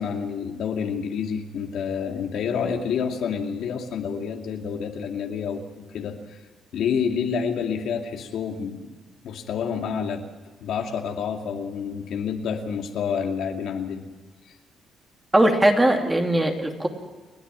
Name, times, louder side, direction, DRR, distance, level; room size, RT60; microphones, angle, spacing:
voice 1, 0.0-6.4 6.7-8.9 9.2-10.3 10.6-14.0, left 6 dB, 75° left, 3 dB, 2.4 m, -28 dB
voice 2, 15.3-16.9, right 1 dB, 15° right, 3 dB, 2.9 m, -19 dB
30.0 x 10.5 x 8.9 m, 1.3 s
cardioid pair, 90°, 0 cm